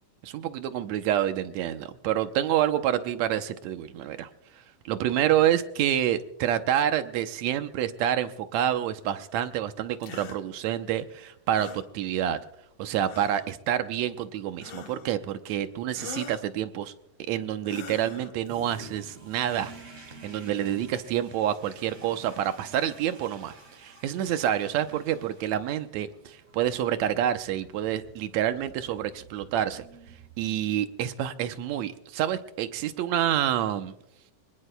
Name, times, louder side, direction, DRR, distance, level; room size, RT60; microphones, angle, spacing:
voice 1, 0.2-4.3 4.9-12.4 12.8-16.9 17.3-19.7 20.2-29.8 30.4-33.9, right 11 dB, 75° right, 9 dB, 1.8 m, -28 dB
sound 1, 10.0-10.4 11.5-11.9 13.0-13.5 14.6-15.1 15.9-16.5 17.7-18.3, left 7 dB, 65° left, 2.2 m, -42 dB
Toilet flush, 18.4-30.7, right 2 dB, 55° right, 6.1 m, -50 dB
25.5 x 19.5 x 2.2 m, 0.80 s
omnidirectional pair, 3.8 m